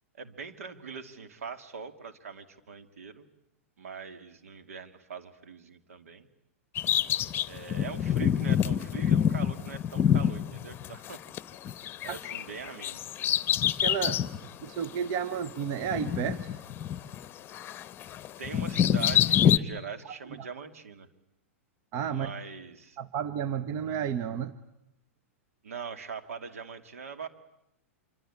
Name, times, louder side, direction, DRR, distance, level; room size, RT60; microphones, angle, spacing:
voice 1, 0.1-3.3 3.8-6.3 7.5-11.2 12.0-13.0 18.4-21.1 22.1-23.0 25.6-27.3, right 5 dB, 75° right, 9 dB, 2.5 m, -42 dB
Bird vocalization bird call bird song, 6.8-11.4 11.6-14.4 14.8-14.9 15.8-17.3 17.5-19.6, left 10 dB, 30° left, 0.9 m, -26 dB
voice 2, 13.8-14.2 14.6-16.5 20.4-20.5 21.9-22.3 23.0-24.5, right 8 dB, 40° right, 17 dB, 1.2 m, -32 dB
26.0 x 25.0 x 8.8 m, 0.84 s
hypercardioid pair, 110°, 8 cm